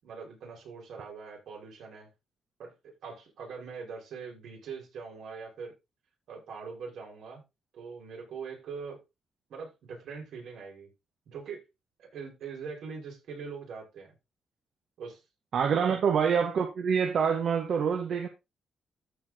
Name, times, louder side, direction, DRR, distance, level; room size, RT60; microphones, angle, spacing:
voice 1, 0.0-2.1 2.6-5.7 6.3-7.4 7.7-9.0 9.5-10.9 11.3-11.6 12.0-14.1 15.0-15.2 15.7-16.0, right 5 dB, 75° right, 5.8 m, -42 dB
voice 2, 15.5-18.3, right 6 dB, 55° right, 1.5 m, -26 dB
14.5 x 4.8 x 3.9 m
cardioid pair, 155°, 0 cm